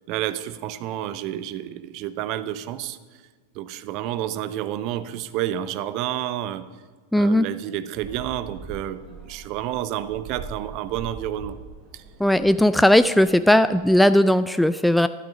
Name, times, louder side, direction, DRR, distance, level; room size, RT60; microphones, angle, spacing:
voice 1, 0.1-3.0 3.5-6.7 7.1-11.6 11.9-12.0, right 12 dB, 40° right, 14 dB, 0.7 m, -30 dB
voice 2, 7.1-7.5 12.2-15.1, left 1 dB, ahead, 12 dB, 0.3 m, -17 dB
sound 1, 8.0-14.3, right 4 dB, 25° right, 4.3 m, -42 dB
12.0 x 12.0 x 5.2 m, 1.5 s
figure-of-eight pair, 90°, 0 cm